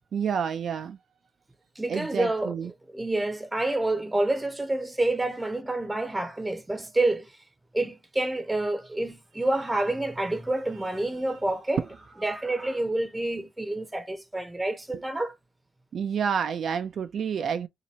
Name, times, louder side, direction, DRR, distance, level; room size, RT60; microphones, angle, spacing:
voice 1, 0.1-1.0 1.9-2.7 11.8-11.9 14.9-15.0 15.9-17.7, right 7 dB, 55° right, 0.4 m, -29 dB
voice 2, 1.8-2.5 2.9-7.3 7.7-11.8 12.2-15.3, right 2 dB, 10° right, 0.7 m, -28 dB
2.9 x 2.5 x 4.1 m
cardioid pair, 90°, 0 cm